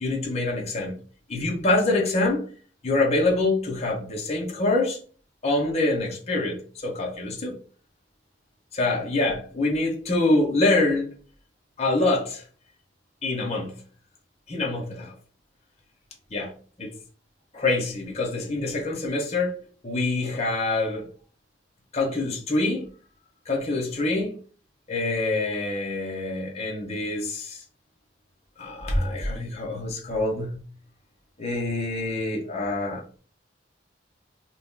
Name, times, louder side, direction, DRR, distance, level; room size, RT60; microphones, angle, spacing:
voice 1, 0.0-0.9 1.3-2.5 2.8-5.0 5.4-7.6 8.7-11.1 11.8-12.4 13.2-13.7 14.5-15.1 16.3-16.5 16.8-16.9 17.5-21.1 21.9-22.9 23.5-24.4 24.9-27.6 28.6-30.6 31.4-33.0, left 2 dB, 35° left, 0.7 m, -25 dB
2.8 x 2.3 x 3.5 m
head